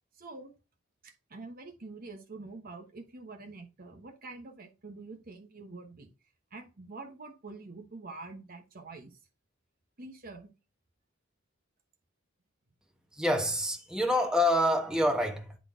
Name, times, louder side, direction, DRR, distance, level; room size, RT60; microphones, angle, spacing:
voice 1, 0.1-0.5 1.0-6.1 6.5-9.2 10.0-10.5, right 3 dB, 45° right, 1.1 m, -46 dB
voice 2, 13.1-15.6, left 1 dB, 5° right, 1.2 m, -27 dB
9.8 x 4.0 x 3.7 m
head